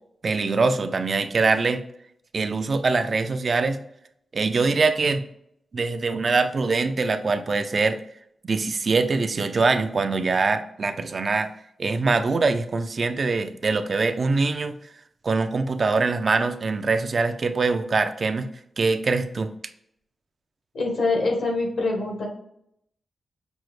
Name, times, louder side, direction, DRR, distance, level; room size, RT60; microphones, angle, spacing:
voice 1, 0.2-1.8 2.3-3.8 4.3-5.2 5.7-8.0 8.5-11.5 11.8-14.7 15.2-18.5 18.8-19.5, right 4 dB, 55° right, 8 dB, 0.3 m, -23 dB
voice 2, 20.7-22.3, left 3 dB, 80° left, -1 dB, 1.4 m, -24 dB
6.0 x 2.0 x 3.1 m, 0.74 s
cardioid pair, 80°, 0 cm